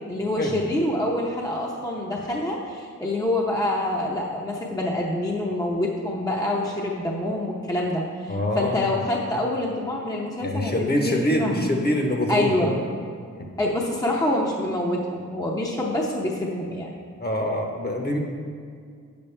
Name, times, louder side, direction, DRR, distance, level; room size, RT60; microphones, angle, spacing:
voice 1, 0.1-11.6 12.3-12.7 13.6-16.9, left 1 dB, 10° left, -2 dB, 0.7 m, -26 dB
voice 2, 8.3-9.0 10.4-12.8 13.4-13.5 17.2-18.2, left 1 dB, 35° left, 1 dB, 1.0 m, -25 dB
7.9 x 7.0 x 3.3 m, 2.1 s
wide cardioid pair, 95°, 30 cm